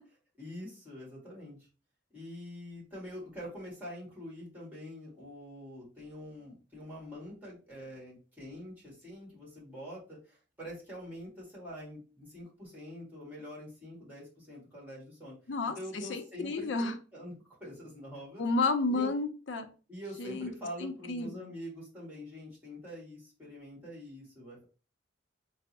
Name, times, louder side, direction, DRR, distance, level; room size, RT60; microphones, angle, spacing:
voice 1, 0.4-1.6 2.1-15.3 15.7-17.3 17.6-18.4 18.9-19.1 19.9-24.6, equal, 10° right, -5 dB, 1.6 m, -45 dB
voice 2, 15.5-16.9 18.4-19.7 20.2-20.5 20.8-21.5, left 3 dB, 75° left, 7 dB, 0.5 m, -31 dB
3.4 x 2.0 x 4.1 m, 0.36 s
head